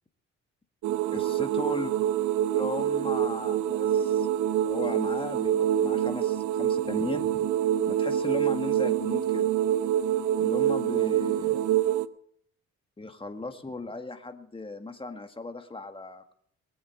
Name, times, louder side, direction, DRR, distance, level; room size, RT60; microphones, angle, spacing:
sound 1, 0.8-12.0, right 11 dB, 75° right, 0.7 m, -26 dB
voice 1, 1.1-1.9 2.5-4.3 4.6-7.5 7.9-9.5 10.4-11.7 13.0-16.3, left 3 dB, 20° left, 6 dB, 1.7 m, -36 dB
22.0 x 7.9 x 6.7 m, 0.68 s
cardioid pair, 90°, 30 cm